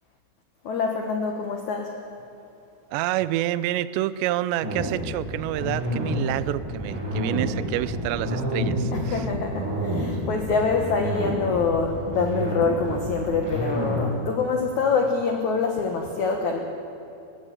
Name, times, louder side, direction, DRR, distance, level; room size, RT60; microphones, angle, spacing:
voice 1, 0.6-1.9 8.9-16.6, left 4 dB, 65° left, 3 dB, 1.9 m, -25 dB
voice 2, 2.9-9.3 10.1-10.2, right 14 dB, 85° right, 14 dB, 2.5 m, -28 dB
sound 1, 4.6-14.1, equal, 25° right, 5.8 m, -29 dB
22.5 x 14.5 x 8.7 m, 2.8 s
omnidirectional pair, 5.6 m